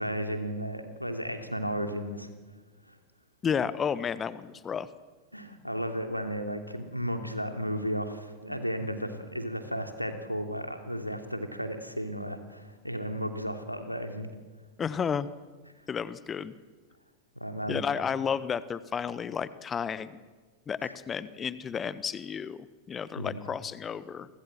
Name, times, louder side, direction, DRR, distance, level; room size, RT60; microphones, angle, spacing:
voice 1, 0.0-2.3 2.9-3.0 5.3-14.3 17.3-17.8 20.8-20.9 23.2-23.4, equal, 90° left, 5 dB, 2.9 m, -34 dB
voice 2, 3.4-4.9 14.8-15.3 15.9-16.5 17.7-20.2 20.7-24.3, left 7 dB, 20° left, 16 dB, 1.2 m, -32 dB
29.5 x 24.0 x 7.5 m, 1.4 s
figure-of-eight pair, 90°, 0 cm